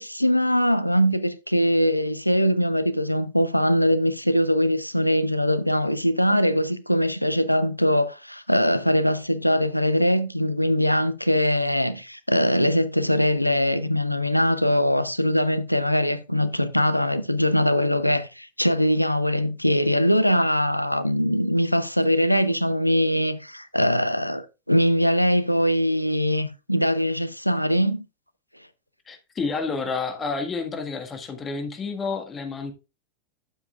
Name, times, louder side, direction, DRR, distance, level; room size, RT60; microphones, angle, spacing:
voice 1, 0.0-28.0, equal, 90° left, 0.6 m, -22 dB
voice 2, 29.1-32.7, left 4 dB, 20° left, 1.7 m, -30 dB
11.5 x 7.1 x 2.5 m
figure-of-eight pair, 90°, 0 cm